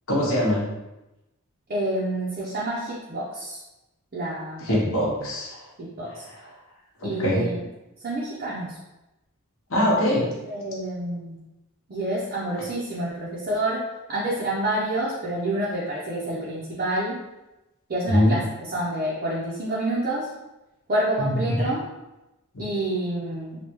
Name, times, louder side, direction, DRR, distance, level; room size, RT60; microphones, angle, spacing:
voice 1, 0.1-0.7 4.6-5.6 6.1-6.5 7.0-7.5 9.7-10.3 18.1-18.4 21.2-21.7 22.5-22.6, left 1 dB, 65° left, -4 dB, 0.9 m, -23 dB
voice 2, 1.7-3.6 4.1-4.8 5.8-6.2 7.0-7.6 8.0-8.8 10.5-11.4 11.9-13.8 14.1-17.2 17.9-18.4 18.7-20.3 20.9-21.8 22.6-23.6, right 1 dB, 40° right, -7 dB, 0.6 m, -28 dB
3.3 x 2.2 x 3.0 m, 0.98 s
head